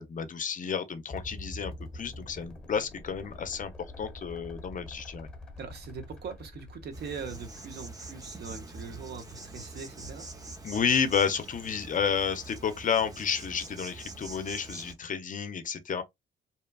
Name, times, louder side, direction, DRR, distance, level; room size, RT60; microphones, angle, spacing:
voice 1, 0.0-3.7 4.0-5.3 10.6-16.0, left 7 dB, 40° left, 0.5 m, -31 dB
sound 1, 1.1-7.5, left 1 dB, 5° left, 1.2 m, -45 dB
voice 2, 5.6-10.3, right 5 dB, 55° right, 0.8 m, -41 dB
Insect, 6.9-14.9, right 2 dB, 20° right, 0.7 m, -44 dB
2.8 x 2.2 x 2.2 m
cardioid pair, 90°, 20 cm